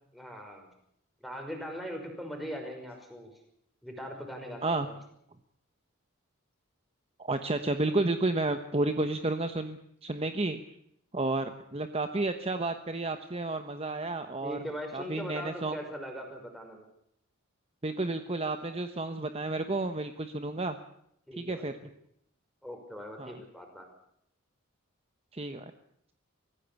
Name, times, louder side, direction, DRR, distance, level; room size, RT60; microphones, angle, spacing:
voice 1, 0.1-0.7 1.2-3.3 3.8-4.9 14.4-16.8 21.3-21.9 22.6-23.9, equal, ahead, 2 dB, 5.5 m, -40 dB
voice 2, 7.2-10.6 11.1-14.6 14.9-15.8 17.8-20.8 21.4-21.7 23.2-23.3 25.3-25.6, right 2 dB, 30° right, 8 dB, 1.0 m, -31 dB
24.0 x 16.0 x 8.3 m, 0.74 s
head